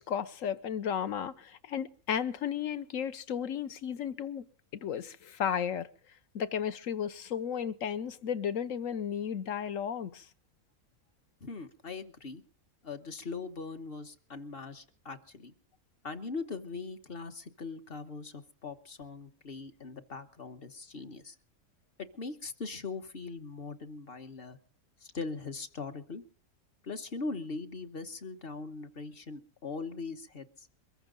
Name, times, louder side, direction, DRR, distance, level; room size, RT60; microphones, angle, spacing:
voice 1, 0.0-4.4 4.8-5.9 6.3-10.3, left 8 dB, 65° left, 1.3 m, -34 dB
voice 2, 11.4-12.4 12.8-15.5 16.0-21.3 22.0-24.6 25.0-26.2 26.8-30.7, left 4 dB, 45° left, 1.3 m, -41 dB
23.0 x 14.5 x 3.8 m
omnidirectional pair, 1.6 m